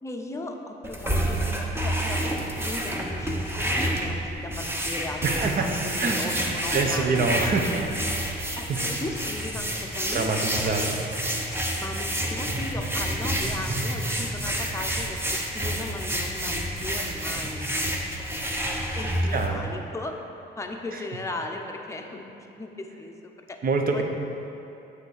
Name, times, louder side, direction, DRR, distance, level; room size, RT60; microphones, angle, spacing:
voice 1, 0.0-7.5 8.6-10.5 11.7-15.2 15.5-17.7 18.9-20.2 20.6-22.2 22.6-23.6 23.9-24.0, left 2 dB, 15° left, 2 dB, 0.6 m, -37 dB
sound 1, 0.8-19.5, right 1 dB, 10° right, 0.9 m, -29 dB
voice 2, 5.2-5.6 6.0-6.4 6.7-7.7 8.7-8.8 10.1-11.0 19.3-19.6 23.6-24.0, right 4 dB, 45° right, 4 dB, 0.8 m, -25 dB
8.0 x 3.3 x 6.4 m, 2.9 s
cardioid pair, 90°, 20 cm